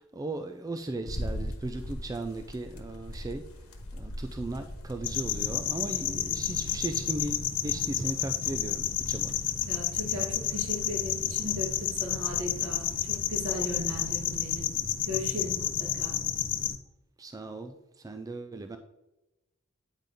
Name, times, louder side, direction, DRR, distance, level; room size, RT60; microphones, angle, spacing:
voice 1, 0.0-3.4 3.9-9.4 17.2-17.7 18.0-18.8, right 2 dB, 15° right, 7 dB, 0.3 m, -37 dB
sound 1, 1.0-14.6, left 1 dB, 85° left, 1.2 m, -42 dB
sound 2, 5.0-16.8, left 9 dB, 40° left, 0.5 m, -31 dB
voice 2, 9.7-14.7 15.0-16.2, left 1 dB, 75° right, -2 dB, 2.6 m, -37 dB
9.0 x 3.5 x 5.4 m, 0.97 s
head